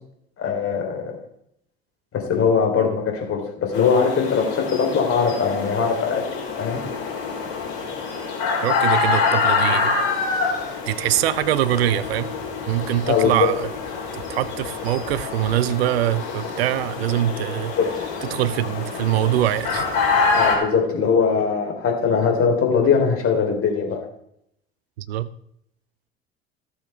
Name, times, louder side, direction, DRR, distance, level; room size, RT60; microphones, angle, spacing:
voice 1, 0.4-1.1 2.1-6.8 13.1-13.5 17.8-18.0 20.3-24.0, left 6 dB, 45° left, 2 dB, 3.6 m, -21 dB
sound 1, 3.7-20.6, left 4 dB, 65° left, 4.3 m, -26 dB
voice 2, 8.6-9.9 10.3-10.4 10.9-12.3 12.7-13.7 14.1-17.7 18.3-19.9 25.0-25.3, right 13 dB, 80° right, 17 dB, 0.6 m, -23 dB
17.0 x 7.1 x 3.5 m, 0.74 s
hypercardioid pair, 65°, 31 cm